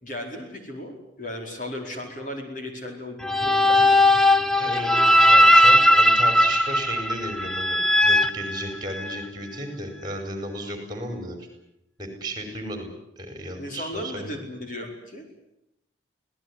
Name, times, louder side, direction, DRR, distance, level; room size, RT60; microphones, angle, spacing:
voice 1, 0.0-4.0 13.6-15.3, left 1 dB, 40° left, 2 dB, 4.6 m, -36 dB
sound 1, 3.2-9.2, left 1 dB, ahead, 0.8 m, -18 dB
voice 2, 4.5-11.5 12.0-12.9 13.2-14.4, right 1 dB, 20° right, 6 dB, 4.9 m, -34 dB
25.0 x 18.0 x 9.8 m, 0.84 s
head